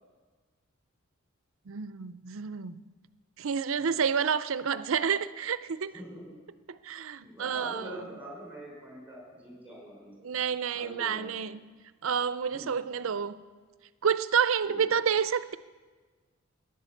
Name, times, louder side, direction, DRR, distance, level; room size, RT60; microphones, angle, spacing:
voice 1, 1.7-2.8 3.4-5.9 6.8-8.2 10.2-11.6 12.0-13.5 14.0-15.6, right 7 dB, 70° right, 0.5 m, -29 dB
voice 2, 7.2-10.1 10.7-11.4 12.5-12.8 14.6-14.8, right 1 dB, 10° right, 5.4 m, -44 dB
15.0 x 10.5 x 7.1 m
head